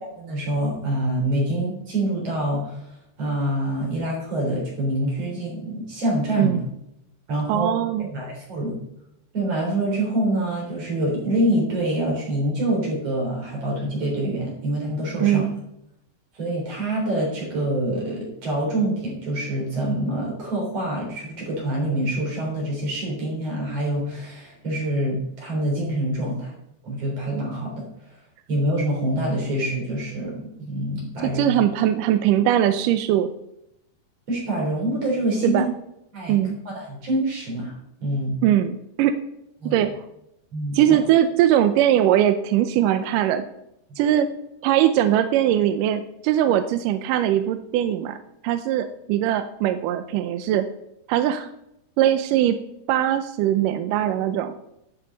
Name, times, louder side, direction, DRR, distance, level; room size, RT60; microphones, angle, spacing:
voice 1, 0.2-2.9 3.2-6.6 7.3-7.7 8.0-8.8 9.3-15.4 16.3-26.5 26.8-27.9 28.5-31.5 34.3-35.6 36.1-36.4 36.7-37.8 38.0-38.4 39.6-39.8 40.5-41.0, right 1 dB, 45° right, -3 dB, 4.5 m, -26 dB
voice 2, 7.5-8.1 15.2-15.6 31.4-33.3 35.4-35.7 36.3-36.6 38.4-39.1 39.7-40.0 40.7-43.5 44.0-44.3 44.6-48.2 48.4-50.7 51.1-51.5 52.0-52.6 52.9-54.5, right 11 dB, 80° right, 9 dB, 2.1 m, -21 dB
11.0 x 7.0 x 4.0 m, 0.80 s
omnidirectional pair, 4.0 m